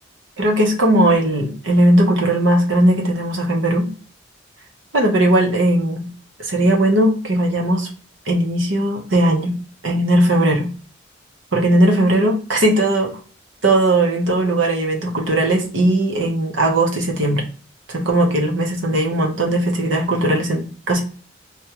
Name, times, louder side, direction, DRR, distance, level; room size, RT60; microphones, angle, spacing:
voice 1, 0.4-3.9 4.9-6.1 6.4-7.9 8.3-9.6 9.8-10.7 11.5-13.1 13.6-17.4 17.9-21.0, right 1 dB, 75° right, 0 dB, 0.9 m, -18 dB
3.4 x 2.4 x 2.9 m, 0.38 s
head